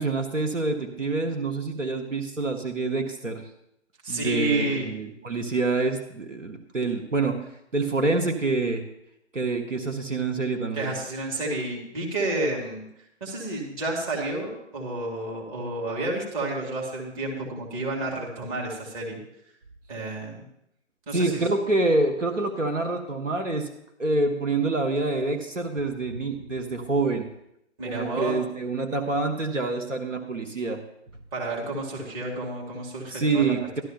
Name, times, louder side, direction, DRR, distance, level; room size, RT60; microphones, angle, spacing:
voice 1, 0.0-3.4 4.1-7.4 7.7-8.8 9.3-10.9 21.1-23.7 24.0-27.3 27.8-30.8 33.1-33.8, right 3 dB, 85° right, 5 dB, 1.1 m, -26 dB
voice 2, 4.0-4.9 10.8-12.9 13.2-19.2 19.9-20.4 21.1-21.4 27.8-28.4 31.3-33.8, right 2 dB, 30° right, -2 dB, 2.3 m, -30 dB
12.5 x 12.0 x 2.9 m, 0.79 s
figure-of-eight pair, 130°, 37 cm